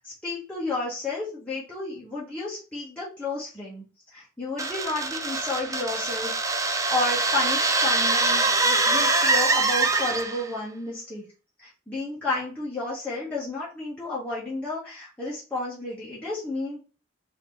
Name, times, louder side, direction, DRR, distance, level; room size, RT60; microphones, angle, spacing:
voice 1, 0.0-3.8 4.1-11.2 11.6-16.8, left 2 dB, 5° left, -8 dB, 1.1 m, -32 dB
sound 1, 4.6-10.5, right 3 dB, 15° right, 0.4 m, -24 dB
3.9 x 2.8 x 3.1 m, 0.34 s
head